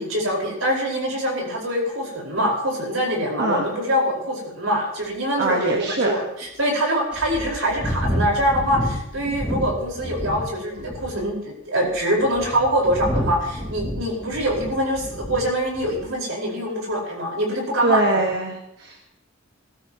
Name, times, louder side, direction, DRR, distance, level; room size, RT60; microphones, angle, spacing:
voice 1, 0.0-18.2, equal, 85° right, -1 dB, 4.8 m, -24 dB
sound 1, 5.0-5.1 5.7-5.8 6.4-6.5 7.1-10.5 10.8-11.3 12.0-15.4 15.7-16.1, equal, 5° right, 4.5 m, -29 dB
voice 2, 5.4-6.1 17.8-19.0, right 2 dB, 55° right, 1 dB, 1.4 m, -22 dB
20.5 x 13.0 x 3.0 m, 0.81 s
head